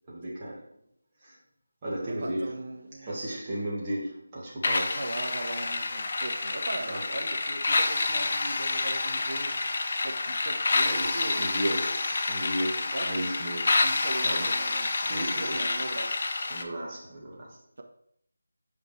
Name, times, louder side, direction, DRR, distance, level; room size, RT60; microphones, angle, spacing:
voice 1, 0.1-0.7 1.2-1.4 1.8-2.6 3.0-5.0 6.9-7.0 10.8-13.9 14.2-14.5 15.0-15.7 16.5-17.6, right 1 dB, 20° right, 2.0 m, -34 dB
voice 2, 2.2-3.4 4.9-9.8 10.0-11.5 12.9-13.4 13.8-16.2, right 2 dB, 55° right, 1.4 m, -39 dB
sound 1, 4.6-16.6, left 3 dB, 40° left, 0.7 m, -28 dB
8.4 x 5.1 x 3.5 m
figure-of-eight pair, 170°, 0 cm